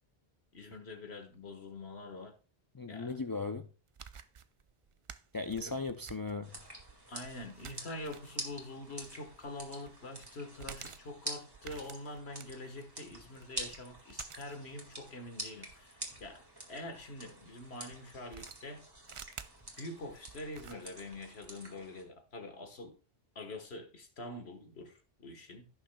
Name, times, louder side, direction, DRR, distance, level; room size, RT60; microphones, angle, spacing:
voice 1, 0.5-2.3 2.9-3.1 5.6-5.8 7.1-16.4 16.7-18.8 19.8-23.0 23.4-25.7, left 2 dB, 85° left, 1.7 m, -45 dB
voice 2, 2.7-3.7 5.3-6.5, left 3 dB, 35° left, 0.3 m, -37 dB
sound 1, 3.9-17.1 17.9-21.5, right 7 dB, 50° right, 0.3 m, -53 dB
sound 2, 6.4-22.0, right 1 dB, 20° right, 2.0 m, -47 dB
16.0 x 6.4 x 2.3 m
omnidirectional pair, 1.0 m